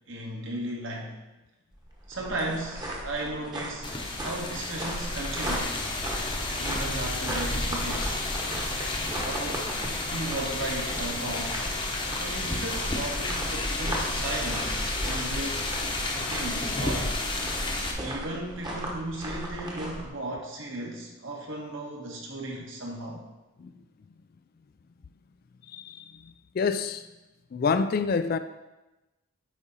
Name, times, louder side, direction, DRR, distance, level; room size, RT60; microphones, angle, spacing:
voice 1, 0.1-1.2 2.1-3.9 4.2-5.8 6.6-8.2 9.2-9.7 10.1-11.6 12.2-15.7 16.1-17.1 18.0-23.2, right 1 dB, 60° right, 1.5 m, -35 dB
sound 1, 1.7-20.1, right 1 dB, 20° right, 1.1 m, -38 dB
sound 2, 3.8-17.9, left 2 dB, 20° left, 0.8 m, -31 dB
voice 2, 25.7-27.1 27.5-28.4, left 5 dB, 45° left, 0.3 m, -28 dB
8.5 x 5.0 x 4.1 m
head